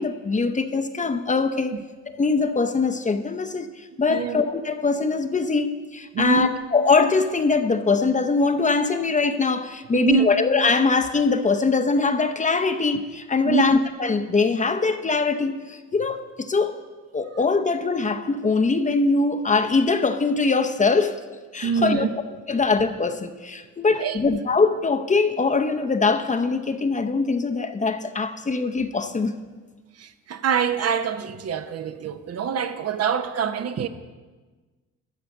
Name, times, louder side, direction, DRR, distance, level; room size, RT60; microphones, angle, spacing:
voice 1, 0.0-1.8 2.2-3.7 4.0-16.8 17.1-21.2 21.5-22.1 22.5-29.3, left 4 dB, 25° left, 0.7 m, -22 dB
voice 2, 6.1-6.5 9.9-10.3 13.4-13.7 17.3-17.4 21.6-22.1 24.0-24.3 30.0-33.9, right 7 dB, 55° right, 0.8 m, -25 dB
12.5 x 5.0 x 7.8 m
cardioid pair, 90°, 30 cm